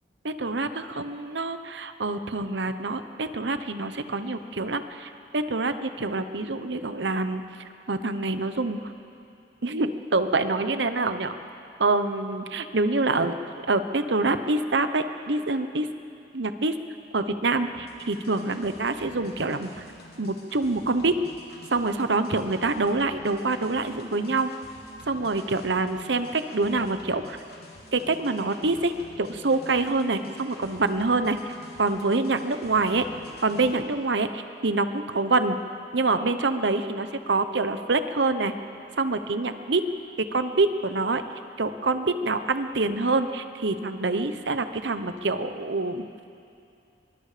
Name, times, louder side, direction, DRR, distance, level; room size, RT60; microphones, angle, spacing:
voice 1, 0.2-7.4 7.9-8.8 9.6-11.4 11.8-13.3 13.7-15.9 16.3-16.7 17.1-19.8 20.2-21.2 21.7-24.5 25.1-27.4 27.9-28.9 29.2-31.4 31.8-33.1 33.4-35.6 35.9-38.5 39.0-39.8 40.3-41.2 41.6-46.0, right 3 dB, 75° right, 10 dB, 1.0 m, -26 dB
sound 1, 17.7-33.7, left 1 dB, 60° left, 3.1 m, -49 dB
23.5 x 23.0 x 5.1 m, 2.5 s
head